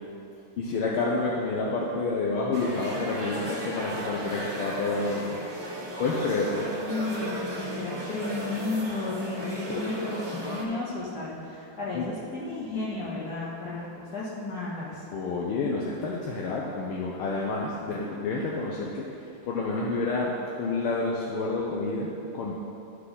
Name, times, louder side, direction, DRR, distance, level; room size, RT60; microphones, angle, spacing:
voice 1, 0.6-5.4 6.0-6.6 9.7-9.8 11.9-12.1 15.1-19.1 19.4-20.3 20.6-22.6, left 3 dB, 80° left, -3 dB, 1.7 m, -29 dB
sound 1, 2.5-10.6, right 1 dB, 15° right, 1.4 m, -36 dB
voice 2, 6.7-15.0, left 2 dB, 45° left, -7 dB, 2.6 m, -33 dB
13.5 x 6.0 x 3.8 m, 2.8 s
omnidirectional pair, 2.4 m